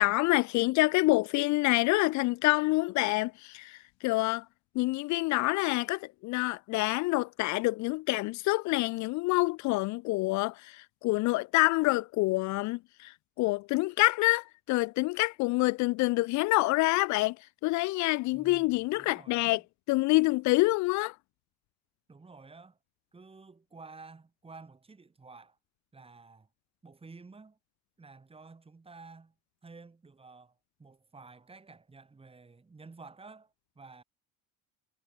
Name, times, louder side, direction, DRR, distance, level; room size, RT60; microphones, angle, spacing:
voice 1, 0.0-4.4 4.7-19.6 19.9-21.2, left 22 dB, 60° left, 0.6 m, -27 dB
voice 2, 18.3-19.6 22.1-22.8 23.1-25.6 25.9-26.5 26.8-27.6 28.0-29.3 29.6-34.0, right 4 dB, 15° right, 3.3 m, -52 dB
supercardioid pair, 105°, 32 cm